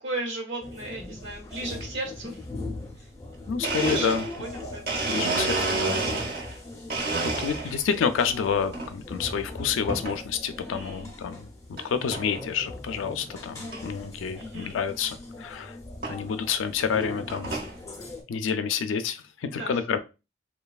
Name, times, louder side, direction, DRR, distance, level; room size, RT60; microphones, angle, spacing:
voice 1, 0.0-2.4 3.0-3.1 3.7-4.1 4.4-5.9 10.5-11.1 14.4-14.8 19.4-19.8, right 2 dB, 80° right, 0 dB, 1.1 m, -36 dB
sound 1, 0.6-18.2, left 2 dB, 15° left, 0.5 m, -40 dB
Domestic sounds home sounds, 3.3-3.4 3.6-6.6 6.9-7.9 8.4-8.9 9.9-10.2 10.8-10.9 11.8-11.9 12.1-12.4 12.9-13.0 13.2-13.3 13.7-13.8 15.1-15.2 16.0-16.2 16.8-17.7, right 3 dB, 50° right, 0.8 m, -30 dB
voice 2, 3.5-4.2 5.1-6.3 7.2-11.5 11.8-15.8 16.1-17.5 18.3-20.0, left 6 dB, 85° left, 9 dB, 0.4 m, -29 dB
3.1 x 2.2 x 2.3 m, 0.29 s
head